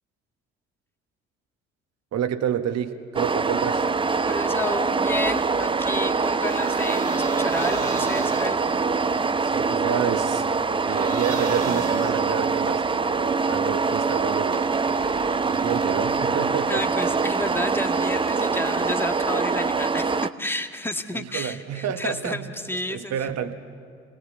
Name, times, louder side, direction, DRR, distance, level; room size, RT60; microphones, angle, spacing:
voice 1, 2.1-3.9 9.4-10.4 10.9-14.7 15.5-16.8 21.1-22.4 22.9-23.5, right 9 dB, 45° right, 8 dB, 1.7 m, -29 dB
sound 1, 3.2-20.3, right 4 dB, 15° right, 0.7 m, -24 dB
voice 2, 4.3-8.6 16.7-23.2, left 1 dB, 5° left, 6 dB, 1.8 m, -31 dB
sound 2, 5.9-8.9 10.9-12.8 14.5-16.0 17.0-19.0, right 4 dB, 80° right, 3.2 m, -37 dB
28.5 x 20.0 x 8.2 m, 2.2 s
figure-of-eight pair, 50°, 35 cm